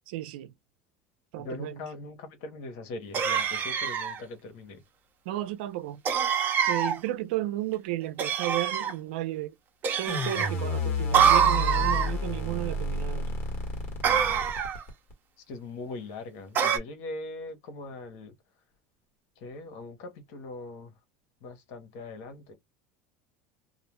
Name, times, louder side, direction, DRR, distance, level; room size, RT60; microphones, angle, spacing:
voice 1, 0.1-0.5 1.3-1.9 5.3-6.0 6.7-9.5 9.9-13.3, right 15 dB, 80° right, 0.5 m, -33 dB
voice 2, 1.4-4.8 15.5-18.3 19.4-20.9 21.4-22.5, left 2 dB, 70° left, 1.0 m, -41 dB
sound 1, 3.1-4.2 6.1-7.0 8.2-8.9 9.8-10.5 11.1-12.1 14.0-14.8 16.6-16.8, right 7 dB, 40° right, 0.7 m, -25 dB
sound 2, 10.1-15.1, left 1 dB, 45° left, 1.3 m, -31 dB
2.4 x 2.1 x 3.0 m
supercardioid pair, 115°, 5 cm